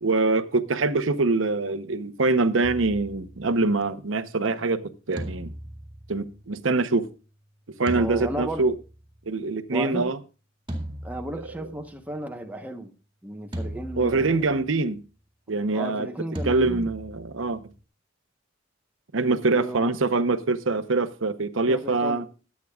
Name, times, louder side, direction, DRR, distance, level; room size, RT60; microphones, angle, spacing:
voice 1, 0.0-5.5 6.1-7.1 7.8-8.7 9.3-10.2 14.0-15.0 15.5-16.1 16.4-17.6 19.1-22.2, right 3 dB, 85° right, 0.9 m, -24 dB
sound 1, 2.6-3.9 5.2-6.9 7.9-9.2 10.7-12.0 13.5-14.7 16.3-17.8, right 1 dB, 25° right, 2.1 m, -38 dB
voice 2, 7.9-8.7 9.7-10.1 11.0-12.9 13.2-14.5 15.7-16.9 19.5-19.9 21.7-22.3, right 1 dB, 10° right, 1.1 m, -34 dB
21.5 x 8.4 x 2.4 m
head